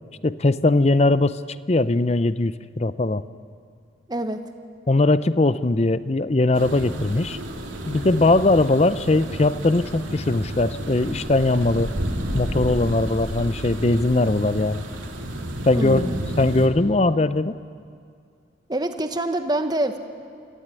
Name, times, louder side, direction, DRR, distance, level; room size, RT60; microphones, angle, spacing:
voice 1, 0.2-1.4 1.7-3.2 4.9-7.4 7.9-11.9 12.3-14.8 15.7-17.6, left 2 dB, 35° left, 15 dB, 0.6 m, -20 dB
voice 2, 4.1-4.4 15.7-16.2 18.7-20.0, right 1 dB, 20° right, 7 dB, 1.2 m, -25 dB
sound 1, 6.5-16.7, right 1 dB, 85° right, 2.8 m, -31 dB
25.5 x 15.5 x 9.9 m, 2.3 s
head